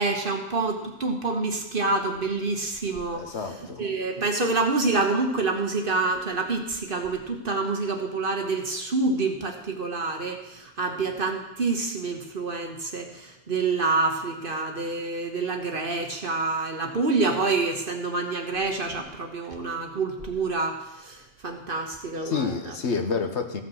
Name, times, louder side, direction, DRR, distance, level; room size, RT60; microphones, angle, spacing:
voice 1, 0.0-3.2 3.8-22.7, right 3 dB, 45° right, 3 dB, 1.4 m, -27 dB
voice 2, 3.1-3.9 22.2-23.6, left 5 dB, 60° left, 6 dB, 1.3 m, -29 dB
15.0 x 5.8 x 6.3 m, 0.92 s
omnidirectional pair, 1.3 m